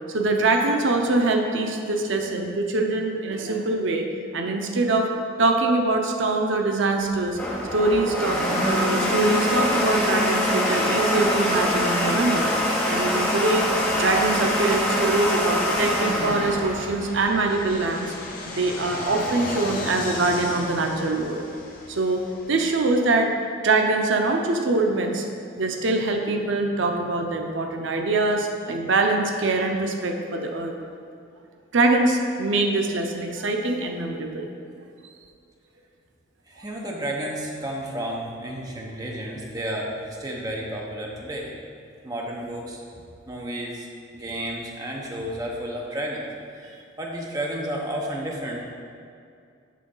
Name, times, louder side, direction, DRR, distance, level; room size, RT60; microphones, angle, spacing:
voice 1, 0.1-4.1 4.3-5.1 5.4-7.4 7.7-12.5 12.9-13.6 13.9-18.1 18.5-21.5 21.9-22.2 22.5-23.3 23.6-25.3 25.6-30.7 31.7-34.5, right 2 dB, 75° right, 3 dB, 0.6 m, -23 dB
Domestic sounds home sounds, 7.0-17.7, left 1 dB, 10° left, 0.9 m, -24 dB
Fixed-wing aircraft airplane, 13.9-23.2, left 2 dB, 45° left, 0.8 m, -37 dB
voice 2, 36.5-41.5 42.0-43.9 44.1-46.3 46.5-48.6, right 1 dB, 20° right, -2 dB, 0.7 m, -32 dB
7.5 x 3.8 x 5.4 m, 2.4 s
head